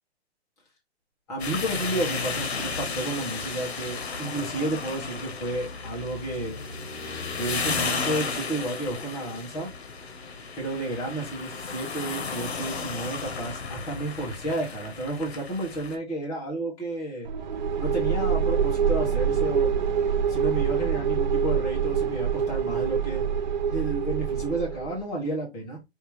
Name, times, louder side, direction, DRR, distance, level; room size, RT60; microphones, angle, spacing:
voice 1, 1.3-6.6 7.3-9.7 9.9-10.1 10.6-17.3 17.8-23.2 23.7-25.8, right 2 dB, 10° left, 1.1 m, -32 dB
sound 1, 1.4-16.0, left 5 dB, 75° left, 1.4 m, -33 dB
sound 2, 17.2-25.0, right 7 dB, 45° right, 0.7 m, -25 dB
5.3 x 2.8 x 3.1 m
hypercardioid pair, 175°, 33 cm